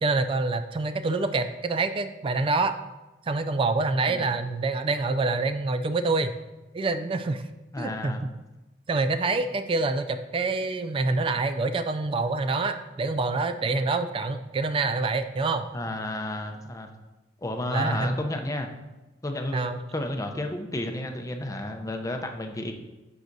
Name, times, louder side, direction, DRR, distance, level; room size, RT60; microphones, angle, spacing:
voice 1, 0.0-2.7 3.3-6.3 6.7-7.4 7.8-8.1 8.9-15.6 17.7-18.2 19.5-19.8, right 3 dB, 30° right, 9 dB, 0.3 m, -26 dB
voice 2, 7.7-8.2 15.7-16.9 17.4-18.7 19.2-19.7 19.9-22.7, left 1 dB, 20° left, 5 dB, 0.6 m, -31 dB
9.6 x 6.1 x 2.7 m, 1.1 s
head